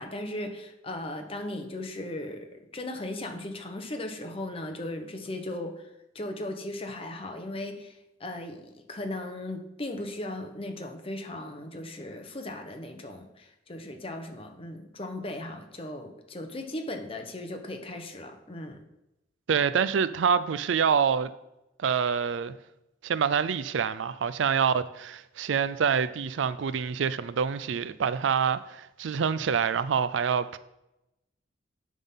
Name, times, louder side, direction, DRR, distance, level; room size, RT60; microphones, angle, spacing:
voice 1, 0.0-2.5 2.7-5.7 6.1-18.8, left 1 dB, 30° left, 0.9 m, -37 dB
voice 2, 19.5-21.3 21.8-22.6 23.0-30.6, right 6 dB, 85° right, 0.4 m, -26 dB
11.0 x 3.7 x 5.6 m
head